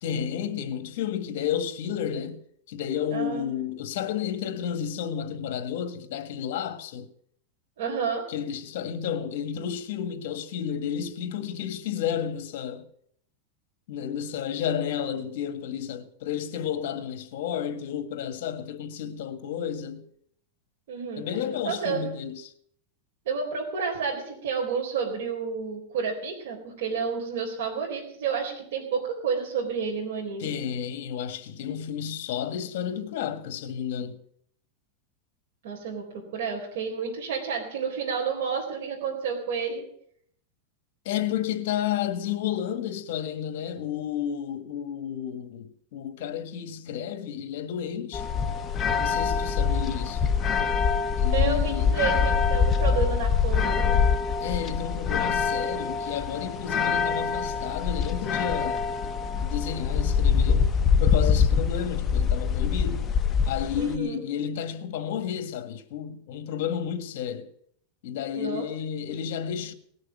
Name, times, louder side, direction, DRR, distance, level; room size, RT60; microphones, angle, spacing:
voice 1, 0.0-2.4 2.7-7.1 8.3-12.9 13.9-20.1 21.2-22.5 30.4-34.2 41.0-48.3 49.0-50.3 51.2-51.9 54.4-60.7 61.0-63.1 63.4-67.5 68.0-69.7, left 9 dB, 60° left, 1.7 m, -31 dB
voice 2, 3.1-3.5 7.8-8.2 20.9-21.3 21.6-22.0 23.3-30.5 35.6-39.8 51.3-54.0 63.8-64.2 68.3-68.7, right 6 dB, 65° right, 4.0 m, -30 dB
sound 1, 48.1-64.0, left 6 dB, 20° left, 0.8 m, -24 dB
18.5 x 6.6 x 9.4 m
supercardioid pair, 155°, 0 cm